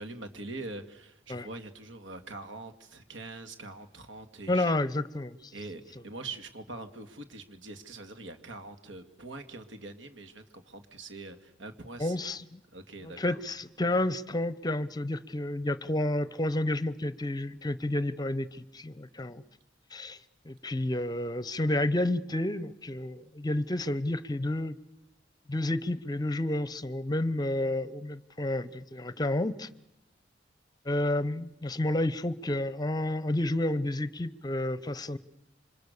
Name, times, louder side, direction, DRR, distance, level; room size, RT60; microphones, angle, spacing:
voice 1, 0.0-4.7 5.5-12.2 12.7-13.4, right 2 dB, 90° right, 8 dB, 2.3 m, -43 dB
voice 2, 4.5-5.5 12.0-12.6 13.0-19.4 19.9-20.2 20.4-24.8 25.5-29.7 30.8-35.2, left 1 dB, 20° left, 16 dB, 0.9 m, -30 dB
27.5 x 25.0 x 6.8 m, 0.91 s
head